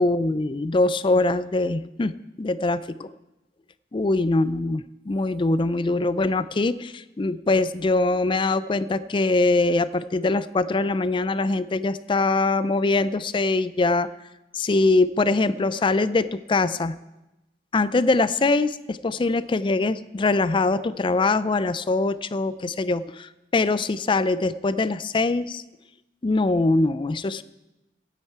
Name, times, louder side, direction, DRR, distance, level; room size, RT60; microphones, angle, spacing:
voice 1, 0.0-3.1 3.9-14.1 14.5-17.0 17.7-25.6 26.2-27.4, left 3 dB, 30° left, 16 dB, 0.4 m, -23 dB
15.5 x 10.0 x 4.7 m, 0.98 s
head